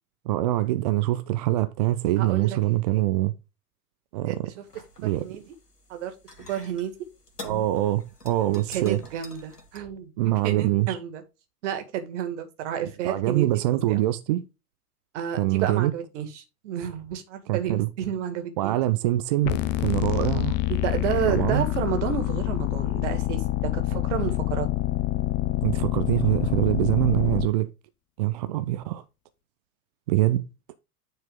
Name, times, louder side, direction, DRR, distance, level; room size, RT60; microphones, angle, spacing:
voice 1, 0.3-3.3 4.1-4.5 5.0-5.3 7.4-9.0 10.2-11.0 13.0-14.5 15.4-15.9 17.5-17.9 18.6-20.6 21.3-21.7 25.6-27.7 28.2-29.0 30.1-30.4, right 15 dB, 30° right, 0.4 m, -24 dB
voice 2, 2.2-2.6 2.9-3.0 4.3-4.6 5.0-5.4 5.9-6.1 6.5-6.9 8.5-11.2 11.6-13.5 13.9-14.0 15.1-18.8 20.7-24.7, right 9 dB, 50° right, 2.1 m, -31 dB
sound 1, 4.6-9.8, left 2 dB, 85° left, 1.8 m, -47 dB
sound 2, 19.4-27.5, left 16 dB, 25° left, 0.6 m, -26 dB
9.7 x 4.4 x 3.7 m
figure-of-eight pair, 90°, 46 cm